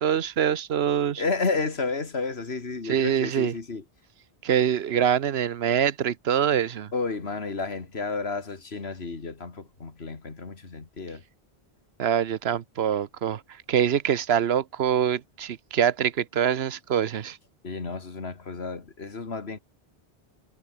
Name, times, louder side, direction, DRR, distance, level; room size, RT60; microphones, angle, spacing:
voice 1, 0.0-1.2 2.8-3.5 4.4-6.9 12.0-17.4, right 9 dB, 80° right, 1.1 m, -24 dB
voice 2, 1.2-3.8 6.9-11.2 17.6-19.6, left 4 dB, 85° left, 2.4 m, -31 dB
omnidirectional pair, 1.0 m